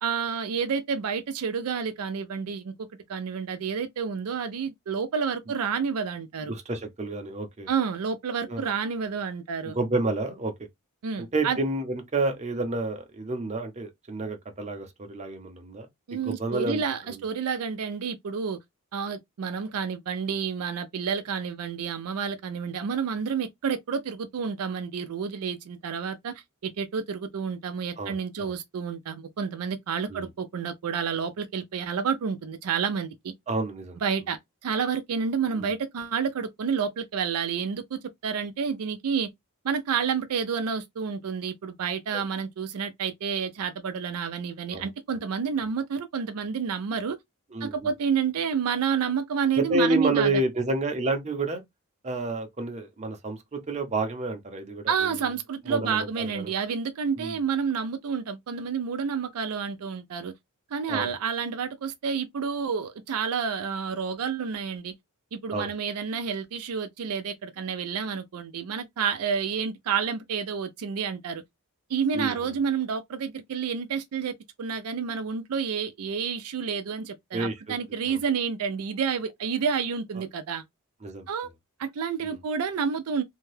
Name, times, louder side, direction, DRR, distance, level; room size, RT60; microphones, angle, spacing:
voice 1, 0.0-2.7 3.1-6.5 7.7-9.8 11.0-11.6 16.1-18.6 18.9-33.3 34.0-39.3 39.6-47.2 47.6-50.3 54.9-60.3 60.7-64.9 65.3-71.4 71.9-80.6 81.3-81.5 81.8-83.2, right 6 dB, 75° right, 0.4 m, -29 dB
voice 2, 6.5-7.7 8.5-8.6 9.6-10.5 11.2-15.9 16.1-16.8 28.0-28.5 30.1-30.3 33.5-34.0 35.6-35.7 42.1-42.2 44.7-44.9 47.5-47.8 49.6-51.6 52.0-55.2 55.7-56.5 57.2-57.4 60.9-61.1 65.5-65.7 72.1-72.5 77.3-77.8 78.1-78.2 81.0-81.3 82.2-82.4, right 2 dB, 30° right, 0.7 m, -29 dB
2.7 x 2.2 x 3.1 m
head